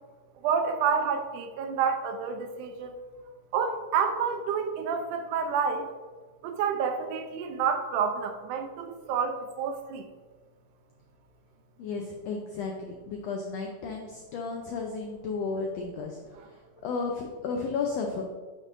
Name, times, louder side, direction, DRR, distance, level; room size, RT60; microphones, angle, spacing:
voice 1, 0.4-2.9 3.5-5.9 6.4-10.0, right 6 dB, 80° right, 4 dB, 2.1 m, -29 dB
voice 2, 11.8-16.2 16.8-18.2, left 4 dB, 85° left, 1 dB, 1.4 m, -33 dB
9.7 x 5.5 x 2.6 m, 1.4 s
omnidirectional pair, 3.7 m